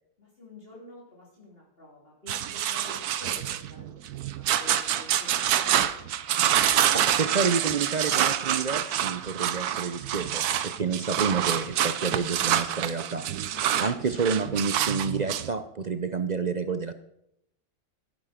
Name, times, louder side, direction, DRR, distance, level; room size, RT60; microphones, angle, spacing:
voice 1, 0.2-5.9 13.5-13.7, left 1 dB, 40° left, -5 dB, 3.4 m, -48 dB
sound 1, 2.3-15.5, right 10 dB, 80° right, 1.3 m, -27 dB
voice 2, 6.9-13.3 13.8-16.9, right 5 dB, 55° right, 10 dB, 0.5 m, -29 dB
14.0 x 10.5 x 5.1 m, 0.79 s
omnidirectional pair, 1.6 m